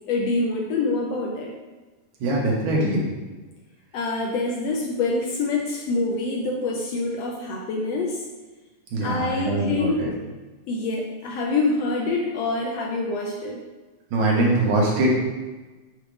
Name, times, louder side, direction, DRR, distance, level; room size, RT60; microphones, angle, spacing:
voice 1, 0.1-1.5 3.9-8.2 9.0-10.1 10.7-13.6, left 3 dB, 75° left, 0 dB, 1.6 m, -26 dB
voice 2, 2.2-3.0 8.9-10.1 14.1-15.1, right 2 dB, 80° right, -3 dB, 2.7 m, -22 dB
6.5 x 3.2 x 5.1 m, 1.2 s
omnidirectional pair, 3.4 m